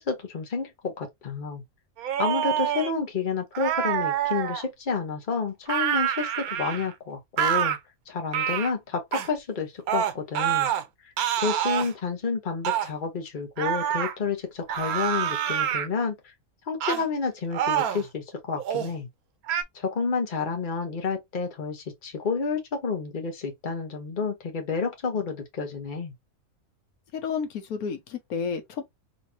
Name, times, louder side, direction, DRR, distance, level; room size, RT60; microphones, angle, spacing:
voice 1, 0.0-1.6 2.2-7.8 8.1-10.7 11.0-11.1 11.4-16.3 16.7-19.1 19.7-26.1, left 5 dB, 40° left, 1.1 m, -30 dB
sound 1, 2.0-2.9 3.6-4.7 5.7-6.9 7.4-7.8 8.3-8.7 9.1-9.3 9.9-10.8 11.2-11.9 12.7-12.9 13.6-14.1 14.7-15.9 16.8-17.0 17.5-18.1 18.6-18.9 19.5-19.6, right 10 dB, 90° right, 1.2 m, -26 dB
voice 2, 27.1-28.8, left 6 dB, 85° left, 1.3 m, -31 dB
3.9 x 3.0 x 2.7 m
omnidirectional pair, 1.5 m